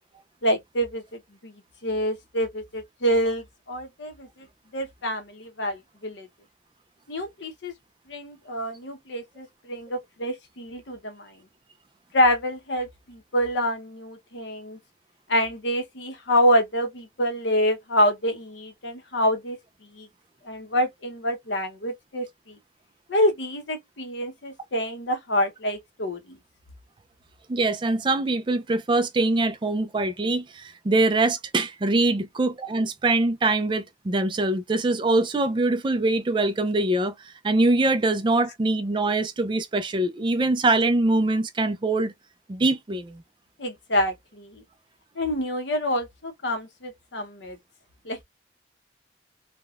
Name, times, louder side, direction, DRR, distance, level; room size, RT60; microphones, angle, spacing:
voice 1, 0.4-1.5 1.8-4.5 4.7-6.3 7.1-7.7 8.1-11.4 12.1-14.8 15.3-19.6 19.9-20.1 20.4-22.6 23.1-26.4 43.6-44.6 45.2-47.6 48.0-48.2, equal, 75° left, 0.8 m, -27 dB
voice 2, 27.5-42.1 42.5-43.2, right 2 dB, 25° right, 0.4 m, -23 dB
3.5 x 2.2 x 2.3 m
head